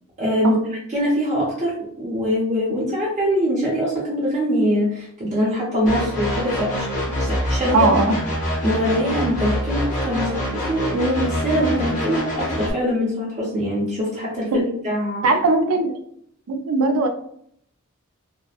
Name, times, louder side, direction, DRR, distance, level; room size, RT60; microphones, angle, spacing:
voice 1, 0.2-0.6 0.9-7.9 8.6-15.2, equal, 30° right, -5 dB, 0.6 m, -23 dB
sound 1, 5.9-12.7, equal, 35° left, 0.8 m, -25 dB
voice 2, 7.7-8.2 14.5-14.6 15.2-15.9 16.5-17.1, right 2 dB, 75° right, 6 dB, 0.4 m, -19 dB
2.8 x 2.0 x 2.4 m, 0.67 s
head